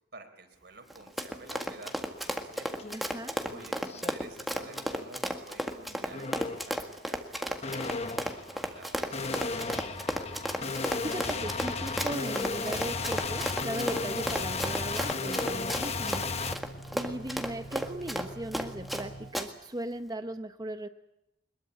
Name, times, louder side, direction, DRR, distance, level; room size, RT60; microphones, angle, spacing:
voice 1, 0.1-2.7 3.5-10.0, right 3 dB, 60° right, 6 dB, 4.1 m, -51 dB
Run, 0.9-19.0 19.3-19.5, equal, ahead, 1.9 m, -34 dB
sound 1, 2.8-3.0 3.4-4.1 4.6-5.1 6.1-6.7 7.6-16.5, left 4 dB, 35° left, 1.1 m, -34 dB
voice 2, 2.9-3.4 10.6-10.7 11.0-16.3 16.9-20.9, right 1 dB, 20° right, 8 dB, 0.8 m, -38 dB
sound 2, 12.7-19.3, right 1 dB, 70° left, 3.4 m, -46 dB
22.5 x 21.5 x 8.4 m, 0.89 s
head